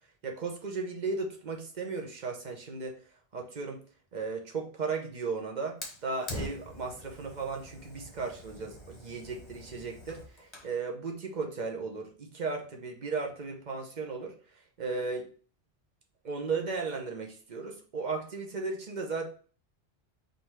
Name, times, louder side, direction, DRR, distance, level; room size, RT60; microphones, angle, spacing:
voice 1, 0.2-3.0 3.3-3.8 4.1-14.3 14.8-15.3 16.2-19.2, right 4 dB, 45° right, 1 dB, 0.9 m, -35 dB
Fire, 5.8-10.8, left 1 dB, 30° left, 0.9 m, -44 dB
3.9 x 2.7 x 4.5 m, 0.42 s
omnidirectional pair, 1.1 m